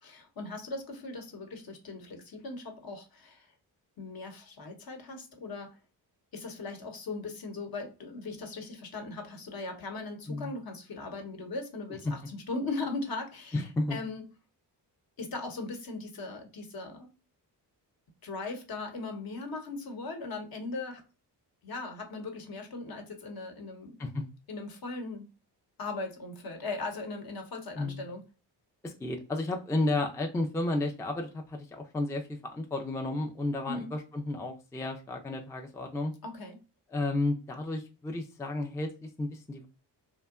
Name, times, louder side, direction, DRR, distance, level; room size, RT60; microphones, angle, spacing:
voice 1, 0.0-3.5 4.0-5.8 6.3-14.3 15.2-17.1 18.2-21.0 21.6-24.0 24.5-25.3 25.8-28.2 33.7-33.9 36.2-36.6, left 3 dB, 55° left, 0.9 m, -39 dB
voice 2, 13.5-14.0 24.0-24.2 27.8-28.0 28.8-36.1 36.9-39.7, left 2 dB, 5° left, 0.3 m, -32 dB
2.8 x 2.2 x 2.3 m
cardioid pair, 75°, 42 cm